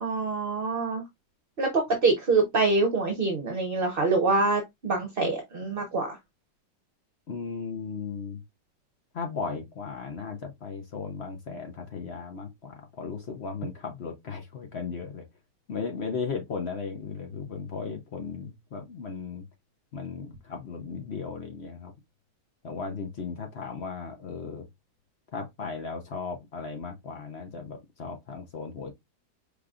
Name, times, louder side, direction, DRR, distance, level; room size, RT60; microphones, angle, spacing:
voice 1, 0.0-1.0 1.6-6.2, right 3 dB, 35° right, 1.0 m, -25 dB
voice 2, 7.3-8.4 9.1-15.2 15.7-19.4 19.9-21.9 22.6-24.7 25.3-28.9, left 5 dB, 50° left, 0.8 m, -36 dB
5.1 x 3.5 x 2.4 m
omnidirectional pair, 1.9 m